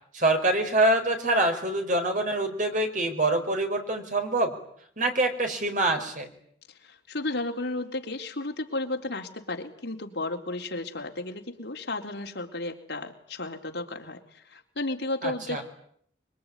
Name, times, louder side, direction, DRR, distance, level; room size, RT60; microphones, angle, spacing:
voice 1, 0.1-4.5 5.0-6.3 15.2-15.6, right 2 dB, 45° right, 5 dB, 4.8 m, -25 dB
voice 2, 6.8-15.6, left 2 dB, 65° left, 3 dB, 3.9 m, -33 dB
25.5 x 24.0 x 9.8 m, 0.66 s
head